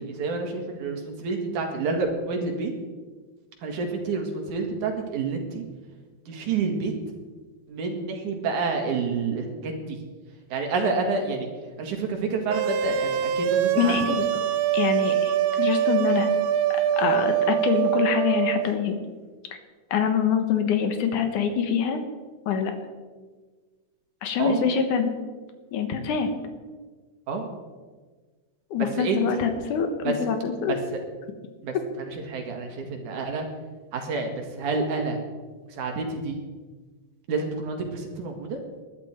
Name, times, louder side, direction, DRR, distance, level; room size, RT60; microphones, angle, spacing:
voice 1, 0.0-2.7 3.6-5.6 6.3-6.9 7.7-10.0 10.5-11.5 11.8-14.0 24.4-24.6 27.3-27.5 28.8-29.4 30.0-30.1 30.7-31.0 31.6-33.5 33.9-35.2 35.7-36.4 37.3-38.6, right 4 dB, 70° right, 3 dB, 3.3 m, -29 dB
sound 1, 12.5-18.7, right 10 dB, 85° right, 2.3 m, -24 dB
voice 2, 13.8-14.3 14.7-16.3 16.7-19.0 19.9-22.0 22.5-22.7 24.2-25.1 25.7-26.3 28.7-30.8, left 7 dB, 75° left, 6 dB, 2.9 m, -25 dB
20.0 x 11.5 x 4.5 m, 1.4 s
omnidirectional pair, 3.7 m